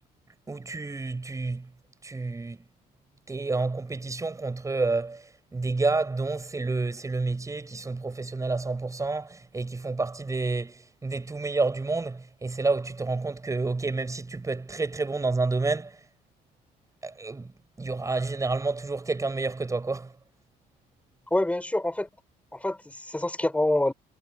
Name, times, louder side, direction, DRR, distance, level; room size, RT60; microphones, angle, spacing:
voice 1, 0.5-1.7 2.0-2.6 3.3-16.0 17.0-17.5 17.8-20.1, right 3 dB, 20° right, 6.2 m, -29 dB
voice 2, 21.3-22.1 22.5-23.9, left 1 dB, 10° left, 4.6 m, -26 dB
cardioid pair, 110°, 17 cm